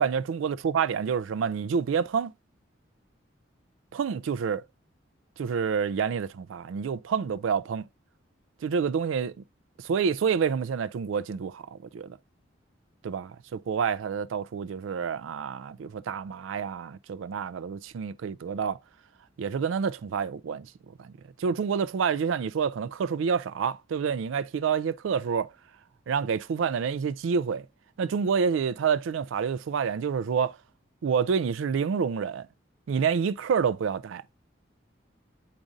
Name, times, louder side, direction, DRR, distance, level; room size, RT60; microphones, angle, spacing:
voice 1, 0.0-2.3 3.9-4.6 5.4-7.9 8.6-9.3 9.8-12.2 13.0-18.8 19.4-20.7 21.0-21.1 21.4-25.5 26.1-27.7 28.0-30.6 31.0-32.5 32.9-34.2, right 6 dB, 80° right, 0.3 m, -28 dB
7.3 x 5.0 x 2.6 m
head